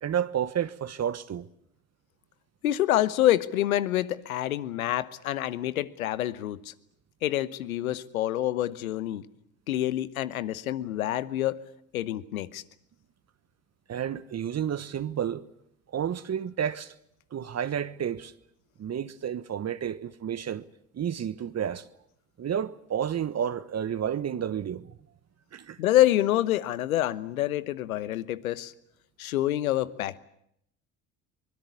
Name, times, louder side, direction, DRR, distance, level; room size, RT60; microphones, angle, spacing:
voice 1, 0.0-1.5 13.9-15.4 15.9-16.9 17.3-18.3 18.8-20.7 20.9-21.9 22.4-25.0 25.5-25.8, right 9 dB, 40° right, 1.2 m, -31 dB
voice 2, 2.6-6.7 7.2-9.2 9.7-11.6 11.9-12.6 25.8-28.7 29.2-30.2, left 13 dB, 90° left, 1.1 m, -27 dB
24.5 x 21.5 x 8.4 m
hypercardioid pair, 65°, 41 cm